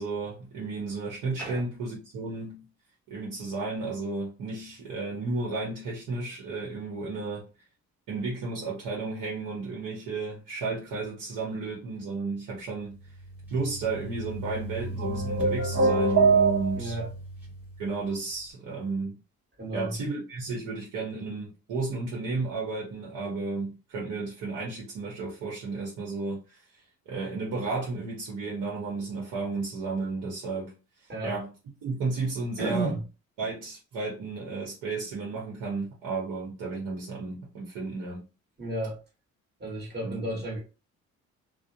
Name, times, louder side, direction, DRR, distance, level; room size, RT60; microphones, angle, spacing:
voice 1, 0.0-2.6 3.1-7.5 8.1-13.0 13.5-17.0 17.8-19.2 19.7-26.6 27.1-30.7 31.2-31.5 31.8-32.9 33.4-38.2 40.0-40.2, right 3 dB, 85° right, 0.9 m, -33 dB
sound 1, 12.8-18.4, right 2 dB, 5° right, 1.0 m, -38 dB
sound 2, 15.0-17.1, right 4 dB, 60° right, 1.2 m, -23 dB
voice 2, 16.7-17.1 19.6-19.9 31.1-31.3 32.6-33.0 38.6-39.0 39.6-40.6, right 2 dB, 35° right, 1.3 m, -32 dB
2.3 x 2.0 x 2.7 m
cardioid pair, 90°, 30 cm